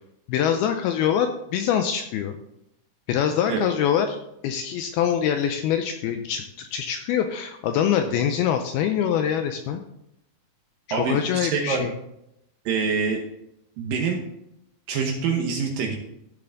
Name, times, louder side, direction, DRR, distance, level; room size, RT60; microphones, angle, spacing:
voice 1, 0.3-2.4 3.1-9.8 10.9-11.9, left 9 dB, 85° left, 6 dB, 2.3 m, -24 dB
voice 2, 10.9-11.9 12.7-13.2 13.8-14.2 14.9-16.0, right 5 dB, 70° right, 2 dB, 2.2 m, -25 dB
14.0 x 6.9 x 3.9 m, 0.81 s
omnidirectional pair, 5.0 m